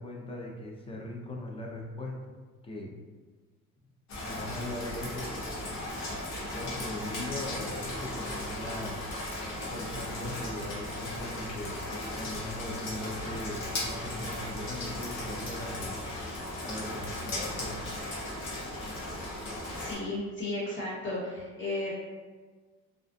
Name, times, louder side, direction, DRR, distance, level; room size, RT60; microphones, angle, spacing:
voice 1, 0.0-2.1 2.6-2.9 4.2-5.3 6.5-9.0 9.7-11.7 12.2-16.0 16.6-17.7, left 1 dB, 20° left, -1 dB, 0.5 m, -39 dB
Rain, 4.1-19.9, left 1 dB, 65° left, 0.8 m, -36 dB
voice 2, 19.7-21.9, left 2 dB, 40° left, -7 dB, 1.3 m, -34 dB
2.4 x 2.2 x 2.5 m, 1.4 s
cardioid pair, 90°, 30 cm